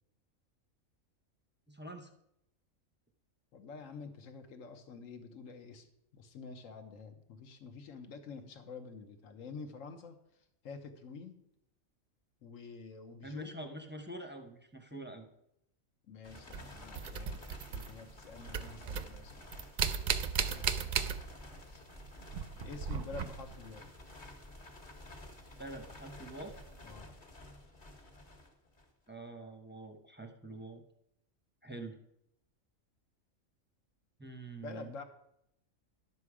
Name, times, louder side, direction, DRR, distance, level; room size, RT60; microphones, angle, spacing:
voice 1, 1.7-2.1 13.2-15.3 25.6-26.5 29.1-30.8 31.6-32.0 34.2-34.9, right 2 dB, 10° right, 4 dB, 0.6 m, -45 dB
voice 2, 3.5-5.9 6.1-10.2 10.6-11.4 12.4-13.5 16.1-19.5 20.4-21.1 21.7-21.9 22.2-23.9 26.8-27.2 34.6-35.0, left 4 dB, 75° left, 8 dB, 1.3 m, -48 dB
sound 1, 16.2-29.1, left 1 dB, 40° left, 1.5 m, -52 dB
sound 2, 16.5-18.2 18.5-21.6 21.9-23.7 25.6-25.7 26.5-26.7, right 7 dB, 55° right, 0.5 m, -36 dB
11.0 x 6.9 x 4.8 m, 0.79 s
omnidirectional pair, 1.4 m